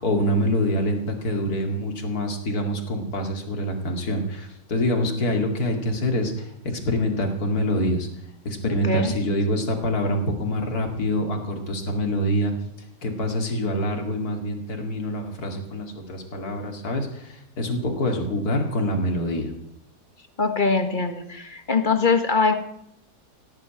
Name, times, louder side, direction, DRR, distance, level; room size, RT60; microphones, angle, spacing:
voice 1, 0.0-8.1 8.4-12.5 13.0-19.5, equal, 60° left, 3 dB, 2.9 m, -25 dB
voice 2, 8.6-9.1 20.4-22.6, left 4 dB, 30° left, 8 dB, 1.5 m, -22 dB
17.0 x 7.9 x 8.9 m, 0.76 s
omnidirectional pair, 1.8 m